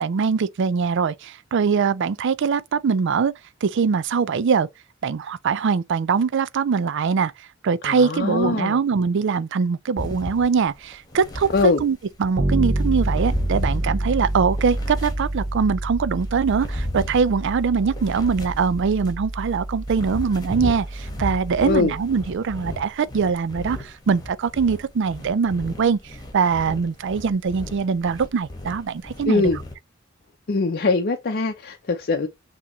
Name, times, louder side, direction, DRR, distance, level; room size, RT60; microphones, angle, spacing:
voice 1, 0.0-3.3 3.6-4.7 5.0-7.3 7.6-11.5 11.8-29.5, right 5 dB, 60° right, 0.4 m, -22 dB
voice 2, 7.8-8.8 11.5-11.8 21.6-21.9 29.3-29.6 30.5-32.3, left 3 dB, 50° left, 0.6 m, -22 dB
sound 1, 10.0-12.3 12.8-15.7 16.2-19.2 19.6-29.7, left 1 dB, 20° left, 1.4 m, -35 dB
Bass guitar, 12.4-22.1, right 1 dB, 40° right, 1.0 m, -28 dB
6.0 x 2.9 x 3.0 m
head